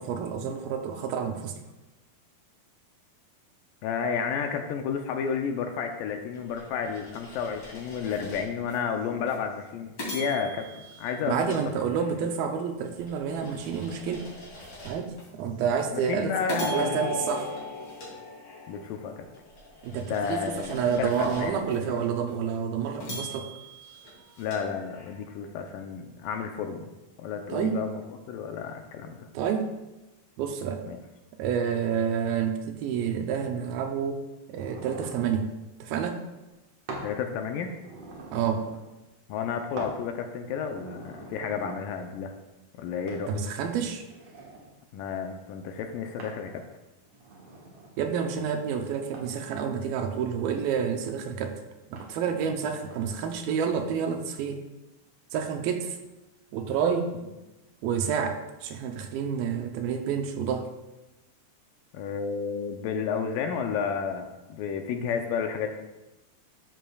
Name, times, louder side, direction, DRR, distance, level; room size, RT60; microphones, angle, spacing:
voice 1, 0.0-1.6 11.3-14.3 14.9-17.5 19.8-23.5 27.5-27.8 29.3-29.7 30.4-30.8 31.4-35.5 35.8-36.2 38.3-38.7 43.3-44.0 48.0-51.6 51.9-54.6 55.3-56.0 56.5-57.1 57.8-60.7, right 7 dB, 80° right, 5 dB, 2.4 m, -29 dB
voice 2, 3.8-10.7 11.0-11.5 15.9-17.0 18.7-19.3 20.1-21.6 24.4-26.9 27.2-28.0 28.3-29.3 30.9-31.0 37.0-37.8 39.3-42.3 42.8-43.3 44.9-46.7 61.9-65.7, left 6 dB, 80° left, 5 dB, 2.0 m, -31 dB
sound 1, 6.3-8.8 9.3-9.4 10.0-12.3 12.8-15.3 15.8-15.9 16.5-18.8 19.3-21.8 22.3-22.4 23.0-25.3, equal, 30° left, 3.0 m, -43 dB
sound 2, 16.6-19.2 21.3-22.0, left 3 dB, 55° left, 1.3 m, -35 dB
sound 3, 34.6-35.4 36.9-37.1 37.5-38.8 39.8-40.0 40.5-41.8 43.1-43.2 43.8-44.7 46.2-46.4 47.0-48.0 49.1-49.4 50.0-50.8 51.9-52.1 52.6-53.0, right 2 dB, 55° right, 1.8 m, -43 dB
12.0 x 7.5 x 2.3 m, 1.0 s
omnidirectional pair, 4.4 m